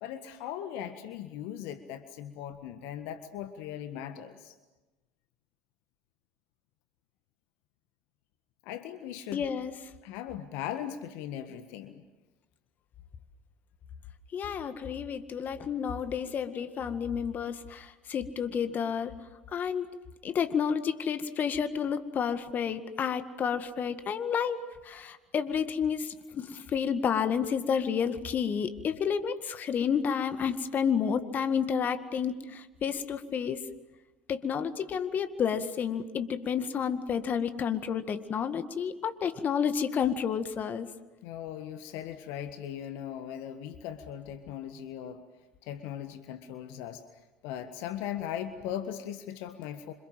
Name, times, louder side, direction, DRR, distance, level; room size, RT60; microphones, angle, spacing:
voice 1, 0.0-4.5 8.6-9.5 10.0-12.0 41.2-45.2 45.6-47.0 47.4-49.9, left 10 dB, 65° left, 10 dB, 1.6 m, -39 dB
voice 2, 9.3-9.7 14.3-19.2 19.5-19.9 20.2-33.6 34.3-40.9, left 7 dB, 40° left, 10 dB, 1.9 m, -30 dB
28.0 x 26.0 x 7.6 m, 1.1 s
hypercardioid pair, 70°, 4 cm